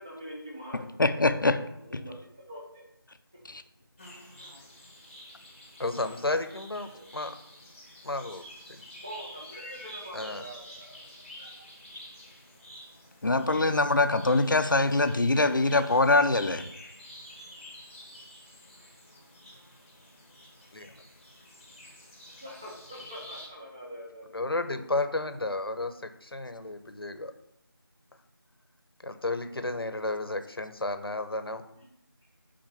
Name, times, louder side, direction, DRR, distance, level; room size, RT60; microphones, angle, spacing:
voice 1, 0.0-1.1 1.7-2.8 4.8-5.0 6.8-7.0 9.0-11.7 22.4-24.7 31.8-31.9, equal, 10° right, -5 dB, 0.9 m, -45 dB
voice 2, 1.0-1.6 3.5-3.6 13.2-16.7, left 2 dB, 55° left, 9 dB, 0.7 m, -23 dB
sound 1, 4.0-23.5, left 1 dB, 10° left, 1.3 m, -49 dB
voice 3, 5.8-7.3 8.0-8.4 8.7-8.8 10.1-10.4 20.7-20.9 24.3-27.3 29.0-31.6, left 2 dB, 75° left, 9 dB, 1.0 m, -32 dB
7.8 x 4.4 x 5.8 m, 0.80 s
figure-of-eight pair, 175°, 13 cm